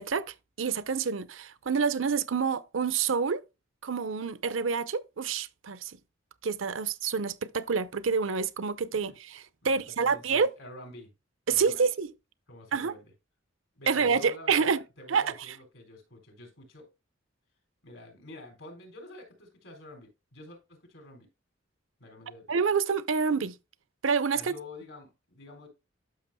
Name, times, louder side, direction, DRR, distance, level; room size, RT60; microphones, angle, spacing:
voice 1, 0.0-3.4 3.8-6.0 6.4-10.5 11.5-12.1 12.7-12.9 13.9-14.8 15.1-15.5 22.5-23.5 24.0-24.5, right 5 dB, 85° right, 0.7 m, -28 dB
voice 2, 9.6-11.1 11.5-11.8 12.5-13.1 13.8-16.9 17.8-21.3 22.0-22.6 24.3-25.7, left 2 dB, 80° left, 3.8 m, -48 dB
12.0 x 6.0 x 2.2 m
head